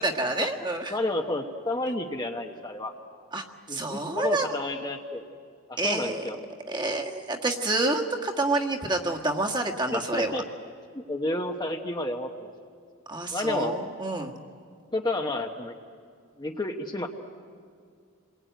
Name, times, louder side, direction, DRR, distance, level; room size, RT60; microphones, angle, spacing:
voice 1, 0.0-0.9 3.3-4.5 5.8-6.2 6.7-10.4 13.1-14.3, right 2 dB, 20° right, 1 dB, 1.7 m, -28 dB
voice 2, 0.9-2.9 3.7-5.2 5.7-6.4 9.9-10.4 10.9-12.5 13.3-13.7 14.9-15.7 16.4-17.1, left 2 dB, 20° left, 3 dB, 1.1 m, -30 dB
29.0 x 21.5 x 9.3 m, 2.2 s
head